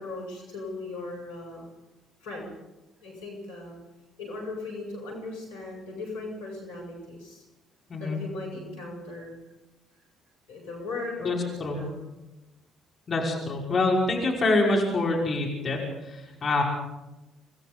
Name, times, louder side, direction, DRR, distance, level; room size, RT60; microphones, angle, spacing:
voice 1, 0.0-1.7 2.2-2.5 3.0-3.8 4.2-7.4 8.0-9.3 10.5-12.0, left 2 dB, 80° left, -2 dB, 7.3 m, -38 dB
voice 2, 7.9-8.2 11.2-11.8 13.1-16.6, left 2 dB, 40° left, -1 dB, 5.7 m, -26 dB
27.5 x 20.0 x 5.4 m, 1.0 s
figure-of-eight pair, 50°, 0 cm